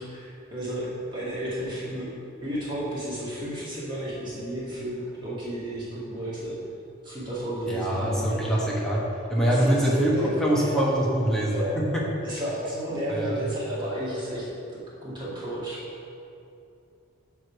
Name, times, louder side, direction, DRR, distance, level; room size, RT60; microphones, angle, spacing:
voice 1, 0.0-2.1 2.4-6.5 7.0-8.4 9.5-10.7 11.5-11.8 12.2-14.5 15.0-15.9, right 1 dB, 20° right, -8 dB, 1.6 m, -32 dB
voice 2, 7.7-9.0 9.3-12.0 13.1-13.4, right 1 dB, 5° left, -5 dB, 1.2 m, -24 dB
9.1 x 3.5 x 6.2 m, 2.7 s
head